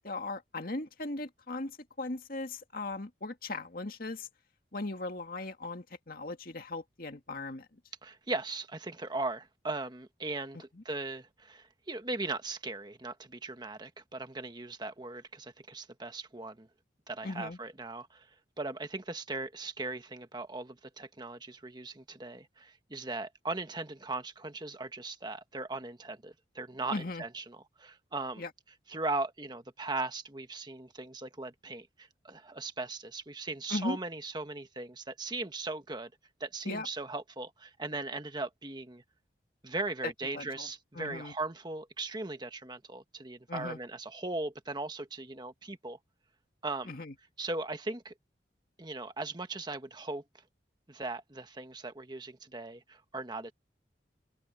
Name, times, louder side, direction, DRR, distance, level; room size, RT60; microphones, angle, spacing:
voice 1, 0.0-4.3 4.7-7.8 10.7-10.8 17.2-17.6 26.9-27.2 28.4-28.5 33.7-34.0 36.7-36.9 40.0-40.7 40.9-41.3 43.5-43.8 46.9-47.1, left 2 dB, 55° left, 2.1 m, -38 dB
voice 2, 8.0-16.7 17.1-18.3 18.6-28.4 28.9-36.1 36.4-39.0 39.6-46.0 46.6-46.9 47.4-48.1 48.8-50.2 50.9-53.5, right 3 dB, 25° right, 1.3 m, -38 dB
head